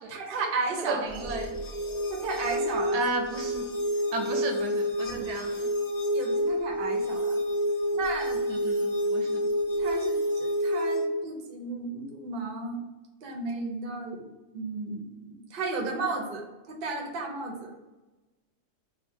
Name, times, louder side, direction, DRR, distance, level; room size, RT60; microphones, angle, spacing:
voice 1, 0.1-1.1 2.1-3.0 4.1-4.2 5.1-5.2 6.1-7.4 7.9-8.4 9.2-9.3 9.7-12.8 13.2-14.3 14.5-17.7, right 3 dB, 45° right, 1 dB, 0.7 m, -34 dB
voice 2, 0.8-1.6 2.9-3.7 4.1-5.7 8.5-9.5, right 3 dB, 80° right, 3 dB, 1.3 m, -34 dB
sound 1, 1.1-11.1, equal, 55° left, 0.4 m, -28 dB
4.2 x 2.1 x 4.3 m, 1.1 s
omnidirectional pair, 1.7 m